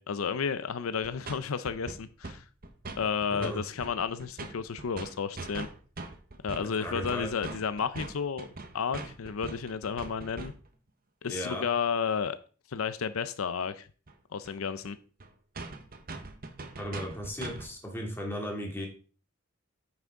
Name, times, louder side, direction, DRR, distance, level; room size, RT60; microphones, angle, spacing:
voice 1, 0.0-2.4 3.0-5.7 6.4-8.5 8.7-10.5 11.2-12.4 12.7-13.9 14.3-15.0, left 6 dB, 85° left, 13 dB, 0.5 m, -32 dB
sound 1, 1.0-1.4 1.6-2.4 2.6-3.5 3.8-10.7 14.1-14.2 14.4-14.5 14.8-14.9 15.2-15.3 15.5-17.7, right 3 dB, 45° right, 1.0 m, -41 dB
voice 2, 3.3-3.6 6.6-7.3 11.3-11.7 16.8-18.9, equal, 10° left, 0 dB, 2.4 m, -36 dB
9.1 x 5.9 x 3.7 m, 0.39 s
head